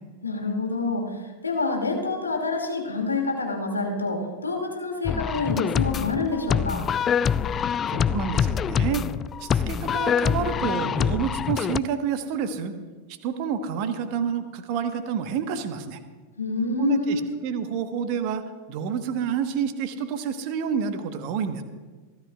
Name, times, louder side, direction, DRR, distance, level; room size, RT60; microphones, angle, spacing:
voice 1, 0.2-6.9 16.4-17.3, left 3 dB, 80° left, 2 dB, 2.4 m, -27 dB
sound 1, 5.0-11.8, left 7 dB, 25° left, 0.3 m, -25 dB
voice 2, 7.9-9.1 9.4-12.7 13.1-16.0 16.8-21.6, right 7 dB, 45° right, 9 dB, 1.2 m, -29 dB
27.0 x 13.0 x 2.4 m, 1.3 s
figure-of-eight pair, 90°, 0 cm